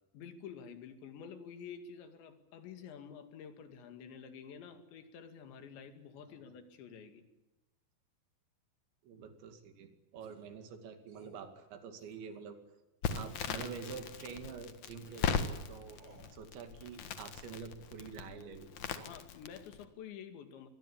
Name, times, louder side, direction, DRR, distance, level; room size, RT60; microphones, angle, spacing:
voice 1, 0.1-7.2 19.1-20.7, left 7 dB, 75° left, 8 dB, 4.5 m, -49 dB
voice 2, 9.0-12.6 13.1-16.0 16.3-19.1, right 6 dB, 75° right, 8 dB, 4.6 m, -47 dB
sound 1, 10.2-10.5 11.1-11.4 12.0-12.5 13.0-13.4 14.1-14.5 15.1-15.2 15.9-16.3, right 4 dB, 35° right, 4.8 m, -61 dB
Crackle, 13.0-19.8, left 6 dB, 60° left, 2.1 m, -39 dB
25.5 x 21.0 x 8.6 m, 0.99 s
omnidirectional pair, 5.2 m